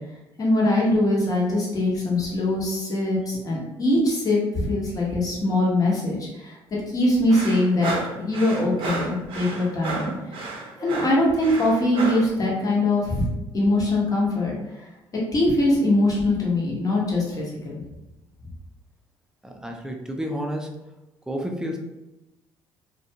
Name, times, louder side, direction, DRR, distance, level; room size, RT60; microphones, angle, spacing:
voice 1, 0.4-6.6 6.9-10.4 10.8-13.3 13.5-14.9 15.3-17.8, left 1 dB, 35° left, -4 dB, 1.0 m, -22 dB
sound 1, 7.3-12.3, right 3 dB, 60° right, 0.6 m, -32 dB
voice 2, 19.4-20.7 21.3-21.8, equal, 5° right, 2 dB, 0.4 m, -30 dB
2.5 x 2.3 x 2.7 m, 0.97 s
supercardioid pair, 80°, 10 cm